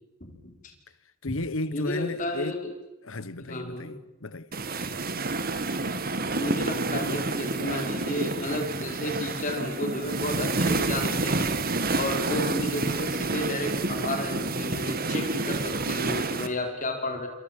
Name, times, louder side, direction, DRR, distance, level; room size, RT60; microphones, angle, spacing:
voice 1, 0.2-0.7 1.7-2.7 3.4-3.9 6.3-17.3, left 1 dB, 35° left, 4.7 m, -32 dB
voice 2, 1.2-2.6 3.0-4.5, left 2 dB, 70° left, 1.2 m, -34 dB
sound 1, 4.5-16.5, right 3 dB, 45° right, 1.9 m, -29 dB
29.0 x 26.5 x 7.5 m
head